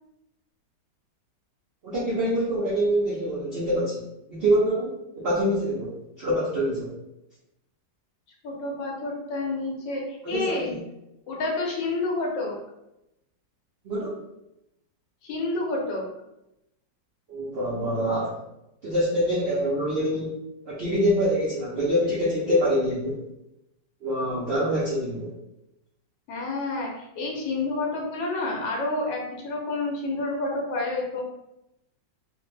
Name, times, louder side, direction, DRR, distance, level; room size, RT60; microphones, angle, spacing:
voice 1, 1.8-6.9 10.2-10.7 13.8-14.2 17.3-18.3 18.8-20.3 20.7-23.2 24.0-25.3, equal, 80° right, -7 dB, 0.5 m, -25 dB
voice 2, 8.4-10.8 11.3-12.5 15.2-16.1 26.3-31.2, left 2 dB, 80° left, -1 dB, 1.4 m, -29 dB
3.3 x 2.1 x 3.2 m, 0.88 s
omnidirectional pair, 2.0 m